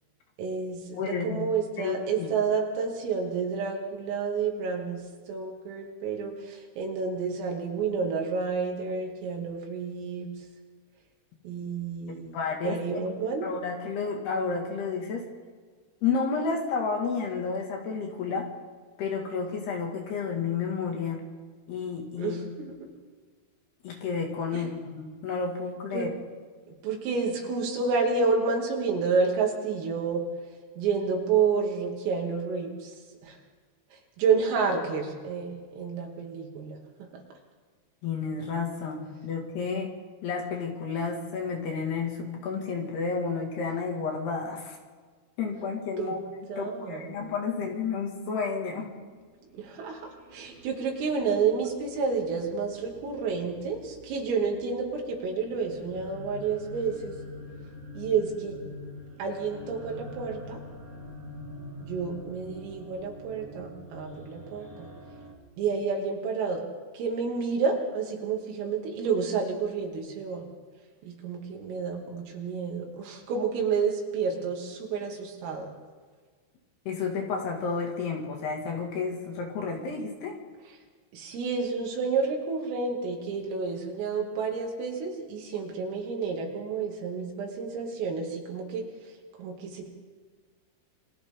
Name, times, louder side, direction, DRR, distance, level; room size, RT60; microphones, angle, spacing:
voice 1, 0.4-10.4 11.5-12.4 12.7-13.5 22.2-22.9 24.5-24.7 25.9-26.1 26.8-30.2 30.8-33.0 33.2-33.4 33.9-37.1 46.0-46.2 46.5-47.3 49.5-57.2 58.0-58.6 59.2-60.6 61.8-64.9 65.6-66.6 66.9-70.5 71.0-75.8 81.1-88.9 89.4-89.9, right 5 dB, 80° right, 0 dB, 5.2 m, -30 dB
voice 2, 0.9-1.5 1.8-2.3 12.1-12.8 13.4-15.3 16.0-18.5 19.0-21.2 21.7-22.4 23.8-26.1 38.0-39.9 40.2-44.8 45.4-46.2 46.6-48.9 76.9-80.4, left 5 dB, 60° left, 1 dB, 3.8 m, -31 dB
sound 1, 49.1-65.3, left 1 dB, 35° right, 1.3 m, -46 dB
28.0 x 24.5 x 3.8 m, 1.5 s
omnidirectional pair, 5.9 m